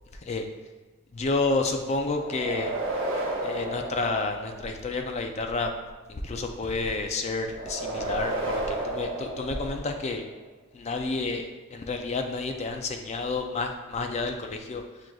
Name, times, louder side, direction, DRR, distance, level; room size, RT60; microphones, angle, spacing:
voice 1, 1.1-2.7 3.4-5.7 6.1-10.2 10.7-14.8, left 3 dB, 30° left, 5 dB, 0.3 m, -30 dB
sound 1, 2.1-4.9 7.5-10.2, right 1 dB, 60° right, 1.0 m, -32 dB
7.3 x 2.5 x 2.3 m, 1.2 s
head